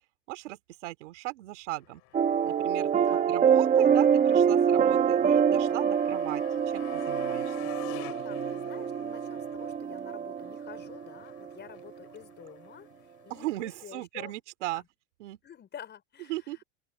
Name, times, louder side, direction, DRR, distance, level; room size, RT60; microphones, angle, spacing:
voice 1, 0.3-2.0 2.4-2.9 3.3-6.4 6.7-7.5 13.3-14.8 15.2-15.4 16.3-16.6, right 18 dB, 80° right, 3.0 m, -37 dB
Motorcycle, 1.8-13.9, left 31 dB, 60° left, 5.9 m, -50 dB
sound 1, 2.1-11.5, right 7 dB, 20° right, 1.0 m, -25 dB
voice 2, 4.4-4.8 8.2-12.9 13.2-14.3 14.7-14.8 15.4-16.6, left 9 dB, 30° left, 5.0 m, -49 dB
open air
supercardioid pair, 120°, 35 cm